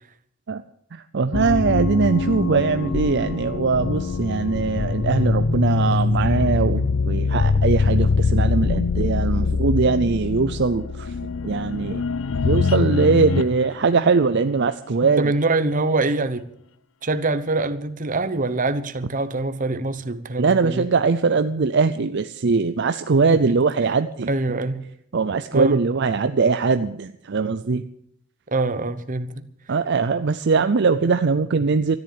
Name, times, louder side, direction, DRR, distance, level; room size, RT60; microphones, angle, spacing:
voice 1, 0.9-11.1 11.4-12.0 12.4-15.2 20.4-24.3 25.1-27.8 29.7-32.0, right 4 dB, 55° right, 0.5 m, -21 dB
sound 1, 1.3-13.6, left 4 dB, 75° left, 0.5 m, -23 dB
voice 2, 15.2-16.5 17.0-20.9 23.5-23.6 24.3-24.8 25.5-25.8 28.5-29.5, right 2 dB, 40° right, 1.0 m, -24 dB
13.5 x 10.5 x 9.0 m
head